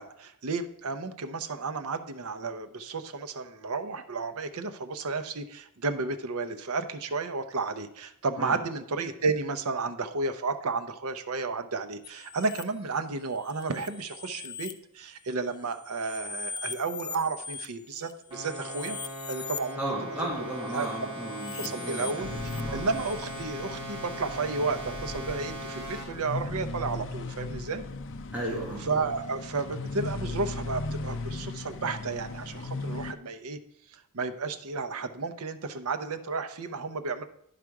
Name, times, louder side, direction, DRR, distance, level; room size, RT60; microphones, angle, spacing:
voice 1, 0.0-19.0 19.3-20.9 21.6-22.3 22.7-27.8 28.8-33.6 33.9-37.2, right 4 dB, 70° right, 8 dB, 0.7 m, -32 dB
sound 1, 12.0-12.6 13.3-14.7 15.3-19.7 20.6-23.4, left 6 dB, 20° left, 0.4 m, -41 dB
sound 2, 18.3-26.0, equal, 25° right, 3.5 m, -39 dB
voice 2, 19.8-23.0 28.3-28.9, right 1 dB, 10° right, -5 dB, 1.5 m, -35 dB
sound 3, 22.2-33.1, left 2 dB, 60° left, 0.6 m, -37 dB
11.0 x 5.0 x 4.7 m, 0.74 s
head